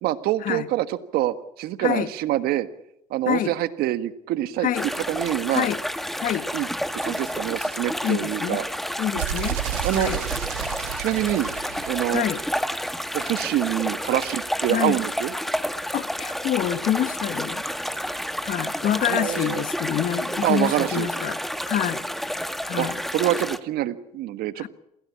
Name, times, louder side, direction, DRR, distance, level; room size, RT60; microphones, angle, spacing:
voice 1, 0.0-2.7 3.1-4.7 5.1-5.7 6.5-6.7 6.9-8.6 9.1-9.2 9.8-10.1 11.0-11.5 11.8-12.2 13.1-15.3 19.1-19.6 20.4-21.1 22.8-24.7, right 14 dB, 70° right, 12 dB, 1.7 m, -25 dB
sound 1, 4.7-23.6, equal, ahead, 1.8 m, -30 dB
voice 2, 6.1-6.5 8.0-8.6 9.0-9.6 9.9-10.2 12.1-12.4 14.7-15.0 15.9-17.6 18.4-21.4 21.7-22.1 22.6-23.0 24.6-24.7, left 11 dB, 55° left, 13 dB, 1.5 m, -26 dB
sound 2, 9.2-13.0, right 16 dB, 85° right, 1.0 m, -32 dB
27.5 x 17.0 x 8.6 m, 0.79 s
supercardioid pair, 75°, 17 cm